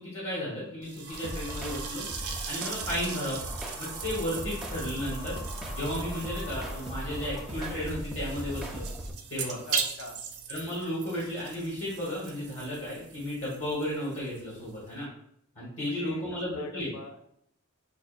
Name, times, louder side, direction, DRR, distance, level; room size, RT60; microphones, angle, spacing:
voice 1, 0.0-2.0 2.5-3.3 3.8-5.4 5.7-8.8 9.3-9.6 10.5-15.1 15.5-16.9, left 1 dB, 55° left, -7 dB, 1.3 m, -34 dB
sound 1, 0.8-15.1, right 6 dB, 80° right, 0.5 m, -40 dB
sound 2, 1.0-7.5, left 3 dB, 40° left, 0.8 m, -47 dB
sound 3, 1.1-9.1, right 1 dB, ahead, 0.4 m, -38 dB
voice 2, 2.9-3.3 9.6-10.2 15.8-16.2 16.5-17.3, left 3 dB, 80° left, 4 dB, 0.6 m, -44 dB
5.5 x 2.0 x 2.4 m, 0.72 s
head